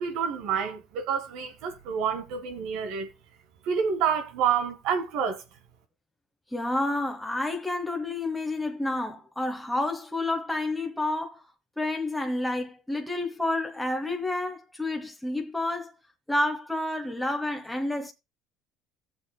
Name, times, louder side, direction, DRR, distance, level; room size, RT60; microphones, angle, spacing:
voice 1, 0.0-3.1 3.6-5.4, right 7 dB, 75° right, 1.7 m, -28 dB
voice 2, 6.5-11.4 11.8-15.9 16.3-18.1, left 2 dB, 5° left, 1.2 m, -29 dB
16.5 x 7.2 x 2.2 m
supercardioid pair, 85°, 0 cm